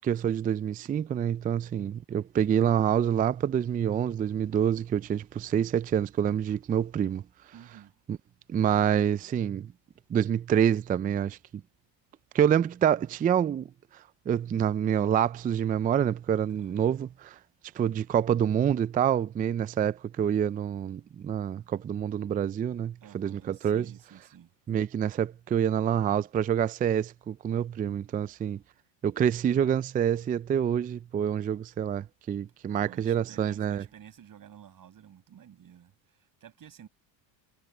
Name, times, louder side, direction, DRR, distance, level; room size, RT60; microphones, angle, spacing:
voice 1, 0.0-7.2 8.1-8.2 8.5-9.7 10.1-11.4 12.3-13.7 14.3-17.4 17.8-23.9 24.7-28.6 29.0-33.8, right 9 dB, 20° right, 0.4 m, -27 dB
voice 2, 7.5-7.9 16.6-16.7 23.0-24.5 32.8-36.9, right 9 dB, 40° right, 6.6 m, -52 dB
supercardioid pair, 100°, 50 cm